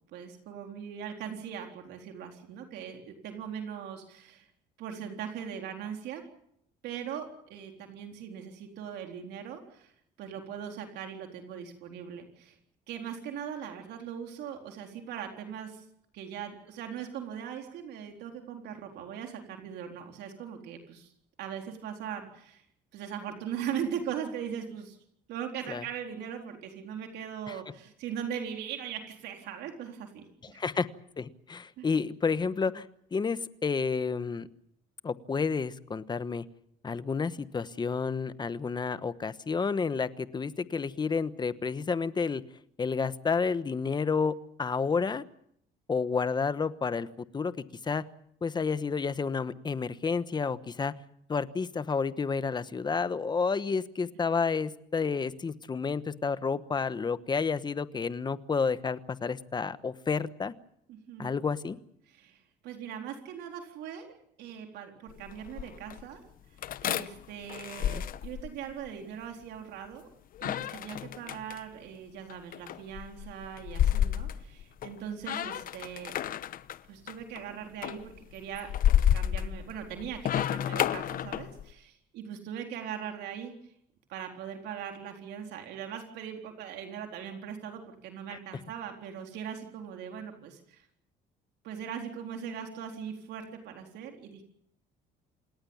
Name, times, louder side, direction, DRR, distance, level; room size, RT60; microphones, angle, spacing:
voice 1, 0.1-4.5 4.8-6.2 6.8-9.9 10.2-12.6 12.9-15.8 16.1-21.1 21.4-22.6 22.9-25.0 25.3-30.6 31.8-31.9 60.9-61.3 62.1-66.2 66.8-70.1 70.4-76.1 76.9-78.7 78.9-83.5 84.1-90.9 91.6-94.4, right 8 dB, 80° right, 3 dB, 4.0 m, -40 dB
voice 2, 30.5-30.9 31.2-32.9 33.1-34.5 35.0-36.4 36.8-42.4 42.8-45.2 45.9-47.1 47.3-48.0 48.4-50.9 51.3-60.5 61.2-61.8 67.8-68.0, left 5 dB, 25° left, 14 dB, 1.2 m, -30 dB
sound 1, 65.1-66.0 66.6-68.9 70.3-71.6 72.3-75.0 75.2-76.8 77.1-77.4 77.8-81.7, left 10 dB, 55° left, 1.0 m, -30 dB
28.0 x 18.5 x 7.2 m, 0.73 s
cardioid pair, 110°, 17 cm